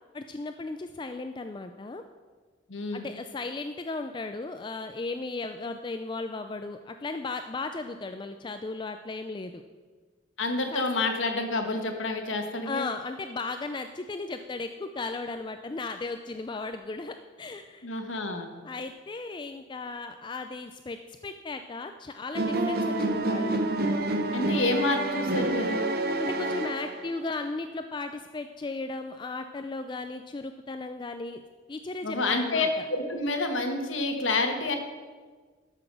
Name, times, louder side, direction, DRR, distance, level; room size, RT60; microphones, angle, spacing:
voice 1, 0.1-2.0 2.9-9.6 10.7-10.8 12.6-17.9 18.6-21.0 21.2-23.6 26.2-31.4 31.7-32.8, left 3 dB, 25° left, 8 dB, 0.3 m, -36 dB
voice 2, 2.7-3.1 10.4-12.9 17.8-18.5 24.3-25.9 32.0-34.8, left 2 dB, 85° left, 5 dB, 1.4 m, -28 dB
sound 1, 22.3-27.2, right 2 dB, 50° right, 0.9 m, -28 dB
12.5 x 6.0 x 6.1 m, 1.5 s
head